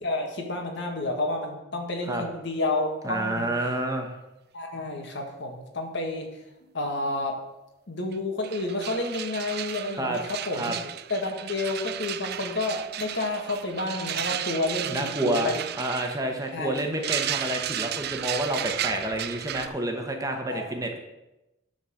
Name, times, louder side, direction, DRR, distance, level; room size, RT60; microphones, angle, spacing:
voice 1, 0.0-3.5 4.5-6.3 6.7-7.4 7.9-10.7 11.1-15.6 16.5-16.8 20.5-20.6, left 2 dB, 60° left, 2 dB, 1.8 m, -30 dB
voice 2, 3.0-4.1 10.0-10.2 10.5-10.8 14.8-21.0, right 1 dB, 15° right, 3 dB, 1.1 m, -29 dB
sound 1, 8.1-8.2 8.4-19.7, right 11 dB, 50° right, 0.5 m, -34 dB
10.5 x 4.2 x 7.7 m, 0.96 s
head